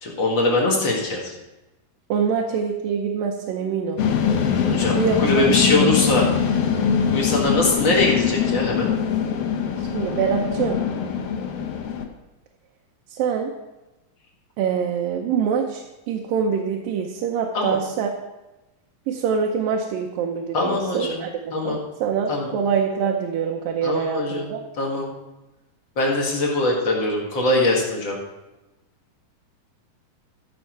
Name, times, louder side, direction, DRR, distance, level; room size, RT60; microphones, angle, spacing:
voice 1, 0.0-1.3 4.6-6.3 7.1-8.9 17.5-17.8 20.5-21.2 21.5-21.8 22.3-22.5 23.8-24.5 24.8-25.1 26.0-28.2, left 2 dB, 40° left, -1 dB, 2.1 m, -22 dB
voice 2, 2.1-4.0 4.4-4.6 4.9-5.5 9.8-10.8 13.1-13.5 14.6-18.1 19.1-24.6, right 7 dB, 80° right, 1 dB, 2.6 m, -25 dB
sound 1, 4.0-12.0, left 7 dB, 75° left, 1.4 m, -23 dB
14.5 x 6.4 x 4.6 m, 1.0 s
omnidirectional pair, 4.0 m